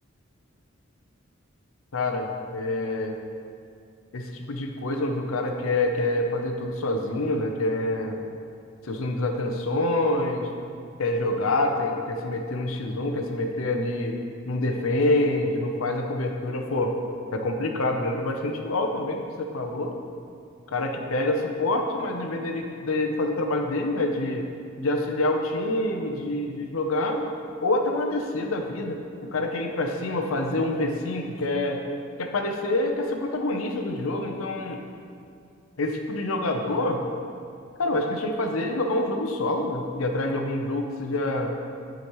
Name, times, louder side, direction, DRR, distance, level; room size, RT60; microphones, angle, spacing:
voice 1, 1.9-3.2 4.1-8.2 8.8-10.5 11.0-14.2 14.5-17.0 17.3-19.9 20.7-24.4 24.8-27.3 27.6-31.8 32.2-34.8 35.8-37.0 37.8-41.5, left 2 dB, 90° left, 3 dB, 0.7 m, -26 dB
9.8 x 5.1 x 3.1 m, 2.4 s
head